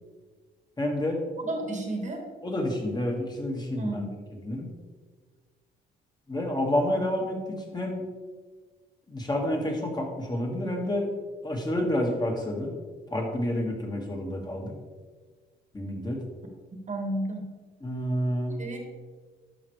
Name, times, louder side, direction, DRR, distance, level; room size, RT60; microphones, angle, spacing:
voice 1, 0.8-1.2 2.4-4.7 6.3-8.0 9.1-11.1 11.4-12.7 13.1-14.7 15.7-16.2 17.8-18.6, left 1 dB, 20° left, 1 dB, 1.9 m, -29 dB
voice 2, 1.4-2.2 3.8-4.1 16.9-17.5 18.6-18.8, right 2 dB, 40° right, 3 dB, 1.6 m, -32 dB
11.0 x 5.9 x 3.3 m, 1.4 s
cardioid pair, 90°, 20 cm